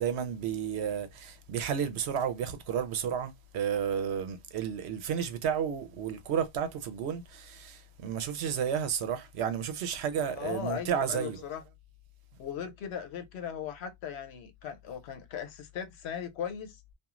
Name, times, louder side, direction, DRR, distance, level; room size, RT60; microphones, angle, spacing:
voice 1, 0.0-11.4, right 8 dB, 75° right, 0.8 m, -32 dB
voice 2, 10.4-11.6 12.4-16.8, left 8 dB, 75° left, 0.8 m, -38 dB
3.0 x 2.3 x 2.4 m
omnidirectional pair, 1.1 m